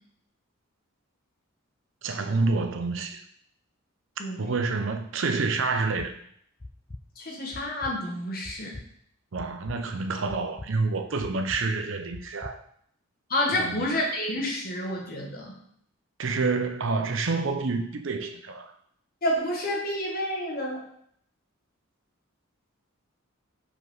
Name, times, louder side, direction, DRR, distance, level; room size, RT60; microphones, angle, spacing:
voice 1, 2.0-3.2 4.2-6.2 9.3-12.6 13.5-13.9 16.2-18.7, right 3 dB, 60° right, 0.6 m, -28 dB
sound 1, 6.0-6.1 6.6-7.0 7.5-7.9 8.4-8.9 9.4-9.8 10.3-10.7 11.2-11.6 12.1-12.5, left 2 dB, 20° left, 0.3 m, -41 dB
voice 2, 7.2-8.7 13.3-15.6 19.2-20.8, left 1 dB, 45° left, 1.3 m, -29 dB
4.9 x 4.9 x 3.9 m
head